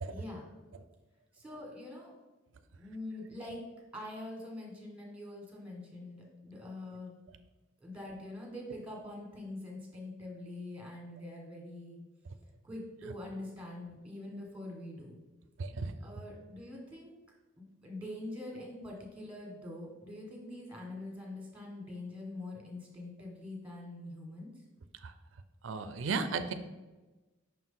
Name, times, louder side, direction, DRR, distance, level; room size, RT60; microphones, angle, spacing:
voice 1, 0.1-0.4 1.3-2.1 2.8-3.6 3.9-7.2 7.8-12.0 12.6-15.2 16.0-17.1 17.6-24.6, left 1 dB, 5° right, -1 dB, 1.6 m, -44 dB
voice 2, 15.6-15.9 25.0-25.1 25.6-26.5, right 4 dB, 70° right, 10 dB, 0.5 m, -34 dB
6.0 x 4.5 x 3.9 m, 1.2 s
head